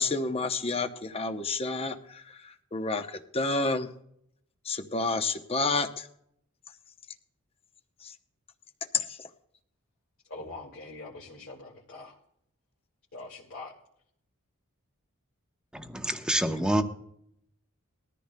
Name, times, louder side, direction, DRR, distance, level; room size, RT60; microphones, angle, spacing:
voice 1, 0.0-2.0 2.7-3.9 4.7-6.1 8.9-9.0, left 3 dB, 25° left, 0.8 m, -29 dB
voice 2, 10.3-12.2 13.1-13.7, left 2 dB, 65° left, 1.9 m, -43 dB
voice 3, 15.7-16.8, right 1 dB, 5° right, 0.9 m, -27 dB
20.5 x 14.0 x 2.2 m
head